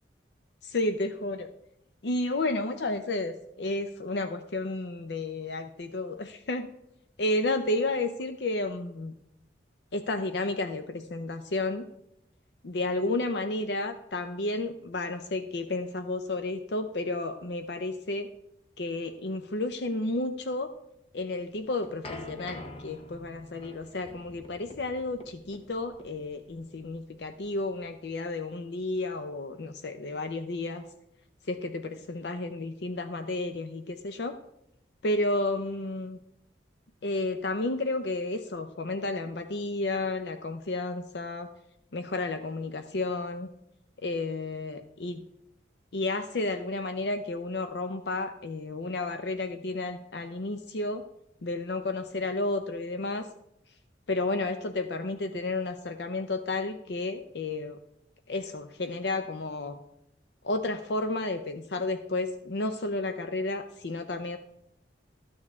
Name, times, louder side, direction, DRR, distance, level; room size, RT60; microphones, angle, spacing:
voice 1, 0.6-1.5 2.0-6.7 7.2-9.1 9.9-11.9 12.6-18.3 18.8-20.7 21.1-30.8 31.5-34.3 35.0-36.2 37.0-41.5 41.9-43.5 44.0-45.2 45.9-51.0 51.4-53.3 54.1-57.8 58.3-59.8 60.4-64.4, left 2 dB, 65° left, 8 dB, 0.6 m, -32 dB
sound 1, 21.4-28.2, left 2 dB, 30° left, 0.9 m, -46 dB
13.5 x 8.7 x 3.6 m, 0.80 s
head